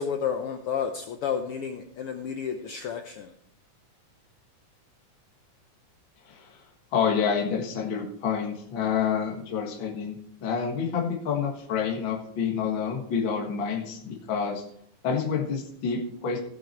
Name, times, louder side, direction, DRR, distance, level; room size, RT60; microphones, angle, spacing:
voice 1, 0.0-3.3, left 7 dB, 75° left, 6 dB, 1.3 m, -31 dB
voice 2, 6.3-6.6 6.9-14.6 15.0-16.4, left 6 dB, 45° left, 0 dB, 2.2 m, -28 dB
16.5 x 6.2 x 4.4 m, 0.72 s
omnidirectional pair, 3.4 m